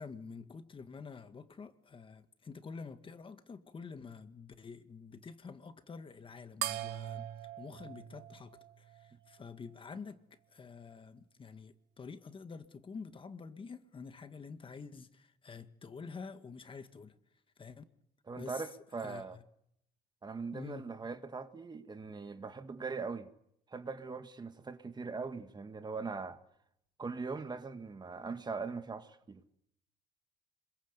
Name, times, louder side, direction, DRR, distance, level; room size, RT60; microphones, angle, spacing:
voice 1, 0.0-7.3 7.6-17.2 17.6-17.8 18.4-18.7 19.0-19.4 20.5-20.9, left 5 dB, 30° left, 1.8 m, -48 dB
sound 1, 6.6-9.4, right 13 dB, 90° right, 1.6 m, -41 dB
voice 2, 18.3-19.4 20.2-23.3 23.7-26.4 27.0-29.4, right 4 dB, 25° right, 1.9 m, -41 dB
26.0 x 22.5 x 8.3 m
cardioid pair, 110°, 17 cm